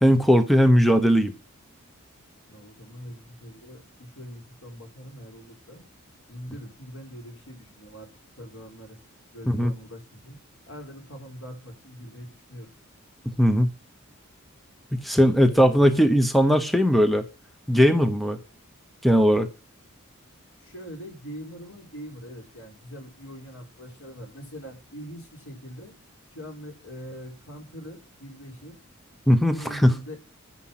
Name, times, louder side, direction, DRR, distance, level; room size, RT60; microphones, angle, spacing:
voice 1, 0.0-1.3 9.5-9.7 13.4-13.7 14.9-17.2 17.7-18.4 19.0-19.5 29.3-29.9, equal, ahead, 0.9 m, -19 dB
voice 2, 2.5-5.9 6.3-8.1 8.4-9.0 9.3-10.4 10.6-12.7 15.5-15.9 20.6-25.9 26.3-28.8 29.4-30.3, equal, 80° left, 4.8 m, -42 dB
10.0 x 8.7 x 5.9 m
head